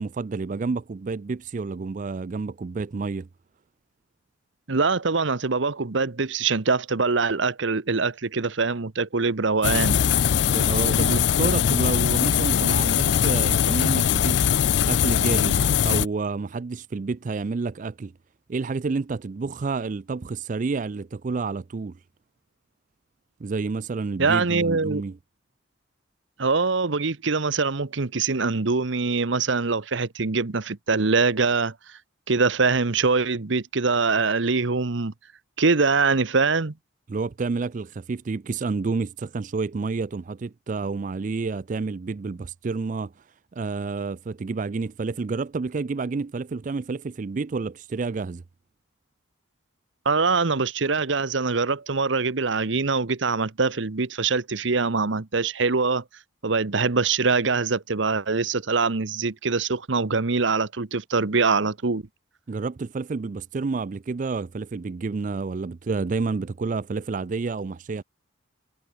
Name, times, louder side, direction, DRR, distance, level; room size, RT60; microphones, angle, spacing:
voice 1, 0.0-3.3 10.5-14.4 14.8-18.1 18.5-21.9 23.4-25.2 37.1-48.4 62.5-68.0, right 4 dB, 40° right, 0.4 m, -29 dB
voice 2, 4.7-10.0 24.2-25.0 26.4-32.0 32.3-35.1 35.6-36.7 50.0-56.0 56.4-62.0, right 4 dB, 70° right, 1.0 m, -23 dB
sound 1, 9.6-16.1, left 9 dB, 60° left, 0.4 m, -21 dB
head